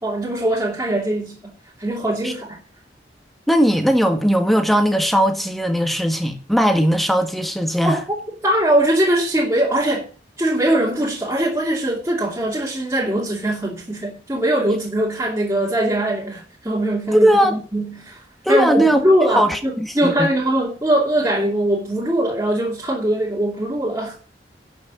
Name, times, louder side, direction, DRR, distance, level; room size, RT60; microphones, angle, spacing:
voice 1, 0.0-1.5 1.8-2.6 7.8-8.0 8.4-10.1 10.4-18.2 18.5-24.2, right 1 dB, 15° right, 2.6 m, -21 dB
voice 2, 3.5-8.0 17.1-17.6 18.4-19.0 19.3-20.3, equal, ahead, 1.6 m, -18 dB
11.0 x 6.5 x 8.1 m
head